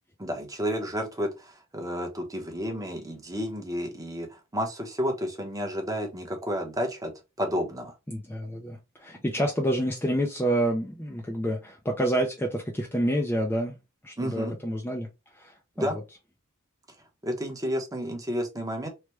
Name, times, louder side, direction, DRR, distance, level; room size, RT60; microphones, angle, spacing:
voice 1, 0.2-4.3 4.5-7.1 7.4-7.9 14.2-14.6 15.8-16.0 17.2-18.9, equal, 15° right, 0.8 m, -31 dB
voice 2, 8.1-13.7 14.0-16.0, equal, 10° left, 0.4 m, -28 dB
3.2 x 2.1 x 2.9 m
head